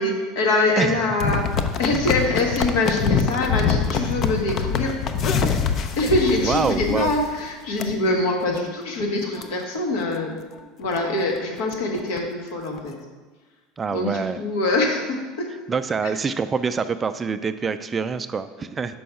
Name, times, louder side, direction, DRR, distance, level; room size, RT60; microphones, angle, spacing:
voice 1, 0.0-1.5 1.8-5.0 6.0-10.4 10.8-12.9 13.9-15.5 16.1-16.2, left 2 dB, 75° left, 1 dB, 1.5 m, -24 dB
sound 1, 1.2-7.4 7.8-7.9 8.4-8.6 9.0-9.1 9.4-9.5 10.0-10.2 10.6-10.7 11.0-11.1 11.4-12.2 12.8-12.9, left 6 dB, 45° left, 0.5 m, -24 dB
voice 2, 6.5-7.1 13.8-14.4 15.7-19.0, right 5 dB, 25° right, 11 dB, 0.3 m, -25 dB
6.2 x 4.7 x 5.7 m, 1.3 s
supercardioid pair, 100°, 0 cm